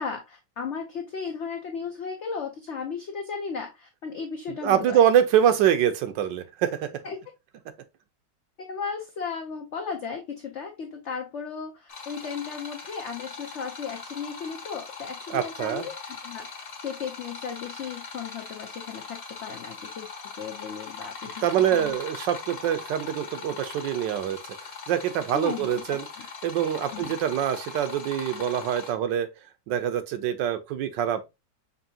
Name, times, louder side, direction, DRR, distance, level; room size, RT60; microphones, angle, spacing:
voice 1, 0.0-5.0 7.0-7.2 8.7-16.5 16.8-20.1 20.4-22.0 25.3-26.3 26.9-27.1, left 6 dB, 90° left, 0.6 m, -35 dB
voice 2, 4.6-6.9 15.3-15.9 21.4-24.4 24.9-26.1 26.4-29.3 29.7-31.3, right 10 dB, 80° right, 1.3 m, -24 dB
sound 1, 11.9-28.9, left 5 dB, 40° left, 1.2 m, -40 dB
5.3 x 2.7 x 2.7 m
omnidirectional pair, 2.0 m